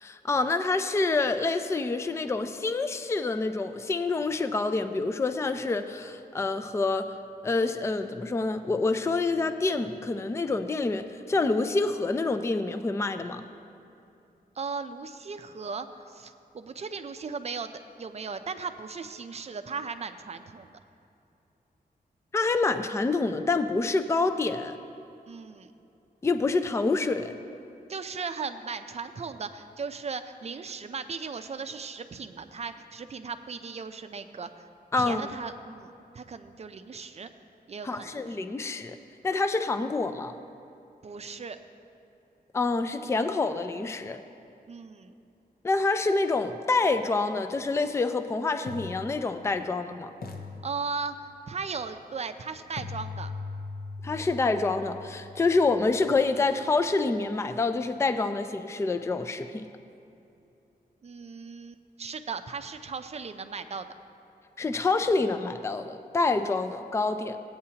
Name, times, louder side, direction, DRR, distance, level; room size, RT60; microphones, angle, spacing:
voice 1, 0.0-7.1 7.4-13.4 22.3-24.8 26.2-27.3 34.9-35.3 37.8-39.0 39.2-40.3 42.5-44.2 45.6-50.1 54.0-59.7 64.6-67.4, left 3 dB, 15° left, 9 dB, 0.3 m, -27 dB
voice 2, 14.6-17.7 18.0-20.7 25.3-25.7 27.9-34.6 35.0-37.3 37.7-38.4 41.0-41.6 44.7-45.1 50.6-51.2 51.5-53.3 61.0-63.9, right 5 dB, 40° right, 9 dB, 0.5 m, -37 dB
sound 1, 47.6-47.7 48.7-49.8 50.2-51.5 52.8-56.7, left 4 dB, 70° left, 0.8 m, -41 dB
17.0 x 8.7 x 2.8 m, 2.7 s
wide cardioid pair, 160°, 16 cm